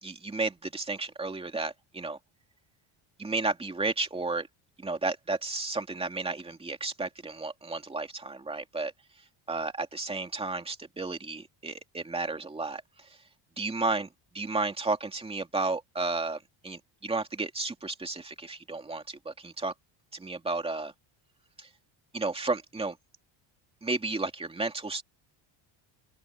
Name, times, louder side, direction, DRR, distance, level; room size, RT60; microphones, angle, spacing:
voice 1, 0.0-2.2 3.2-4.5 4.8-8.9 9.5-13.1 13.6-19.7 20.1-20.9 21.6-21.7 22.1-23.0 23.8-25.0, right 3 dB, 10° right, 2.6 m, -33 dB
open air
cardioid pair, 165°, 48 cm